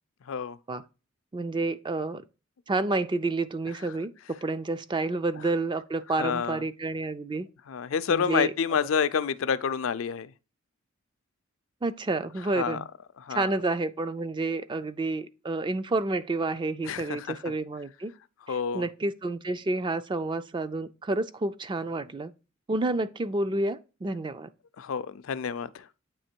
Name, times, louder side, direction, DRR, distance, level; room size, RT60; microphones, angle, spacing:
voice 1, 0.3-0.6 6.2-6.6 7.7-10.3 12.6-12.8 13.2-13.5 16.8-17.4 18.5-18.9 24.8-25.9, left 6 dB, 75° left, 0.4 m, -28 dB
voice 2, 1.3-2.2 2.7-4.1 4.4-7.5 8.1-8.5 11.8-12.9 13.3-18.1 18.5-22.3 22.7-24.5, right 2 dB, 25° right, 0.3 m, -29 dB
8.6 x 3.0 x 4.4 m
head